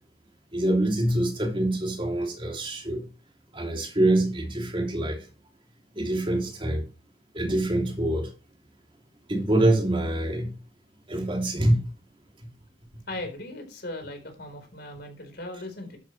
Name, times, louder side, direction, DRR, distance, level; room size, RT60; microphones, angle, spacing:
voice 1, 0.5-3.0 3.5-5.3 5.9-6.8 7.3-8.3 9.3-10.6 11.1-11.9, right 1 dB, 30° right, 2.8 m, -25 dB
voice 2, 13.1-16.0, left 1 dB, 60° left, 4.2 m, -38 dB
12.0 x 9.1 x 3.2 m
head